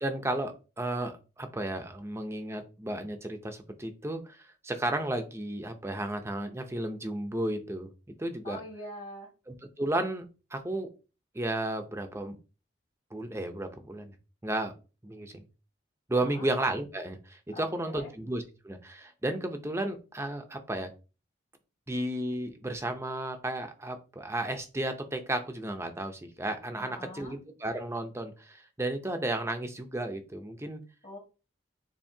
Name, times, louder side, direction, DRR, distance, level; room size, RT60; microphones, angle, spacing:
voice 1, 0.0-7.9 8.2-8.6 9.5-10.3 10.5-10.9 11.3-12.4 13.1-14.1 14.4-14.7 15.0-15.4 16.1-20.9 21.9-30.8, right 1 dB, 15° right, 7 dB, 0.6 m, -33 dB
voice 2, 8.4-9.3 16.2-16.5 17.5-18.1 26.8-27.3 31.0-31.2, left 1 dB, 45° left, -1 dB, 1.6 m, -43 dB
7.2 x 2.7 x 2.7 m, 0.32 s
head